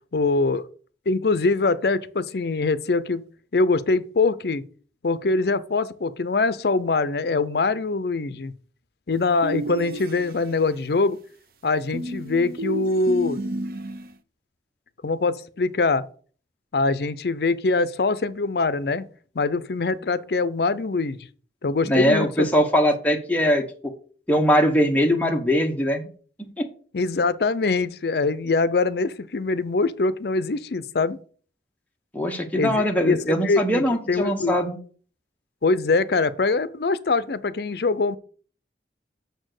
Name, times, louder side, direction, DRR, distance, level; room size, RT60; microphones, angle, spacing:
voice 1, 0.1-0.7 1.1-3.2 3.5-4.6 5.0-8.5 9.1-11.2 11.6-13.4 15.0-16.1 16.7-19.0 19.3-21.3 21.6-22.5 26.9-31.2 32.6-34.6 35.6-38.2, left 3 dB, 65° left, 0.5 m, -23 dB
sound 1, 9.4-10.7 11.9-14.1, right 1 dB, 55° right, 0.5 m, -31 dB
voice 2, 21.8-23.6 24.3-26.1 26.4-26.7 32.1-34.8, equal, 10° left, 0.9 m, -21 dB
6.6 x 4.3 x 6.5 m
head